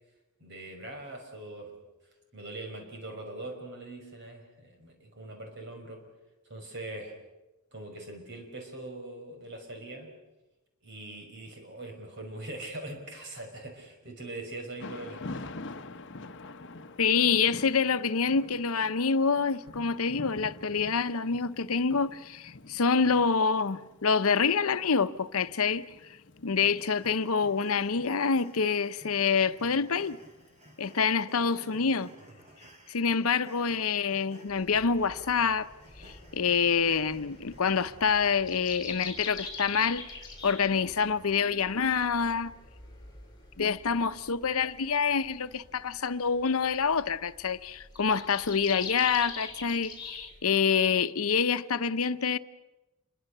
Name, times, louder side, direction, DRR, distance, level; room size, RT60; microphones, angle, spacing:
voice 1, 0.4-1.8 2.3-6.0 6.5-7.1 7.7-10.1 10.8-15.2, right 2 dB, 55° right, 5.7 m, -42 dB
Thunder / Rain, 14.8-30.8, left 2 dB, 55° left, 1.0 m, -47 dB
voice 2, 17.0-25.9 26.4-30.2 30.8-32.1 32.9-35.7 36.0-40.1 40.4-42.5 43.6-52.4, left 5 dB, 85° left, 0.8 m, -27 dB
sound 1, 26.6-38.3, equal, 30° right, 2.8 m, -55 dB
sound 2, 34.5-50.4, left 4 dB, 20° left, 7.4 m, -45 dB
27.5 x 23.5 x 6.7 m
head